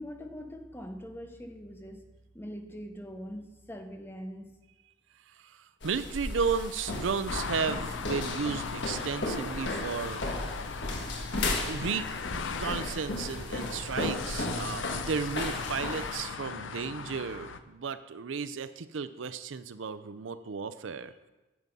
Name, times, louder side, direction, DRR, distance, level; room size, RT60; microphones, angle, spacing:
voice 1, 0.0-2.1 2.3-4.6, equal, 10° left, 6 dB, 0.8 m, -42 dB
voice 2, 5.3-10.2 11.7-12.1 12.6-21.1, right 5 dB, 85° right, 13 dB, 0.5 m, -34 dB
sound 1, 5.8-16.2, left 2 dB, 65° left, 1.5 m, -35 dB
sound 2, 7.3-17.6, left 5 dB, 80° left, 0.6 m, -39 dB
9.3 x 7.5 x 5.4 m, 1.1 s
head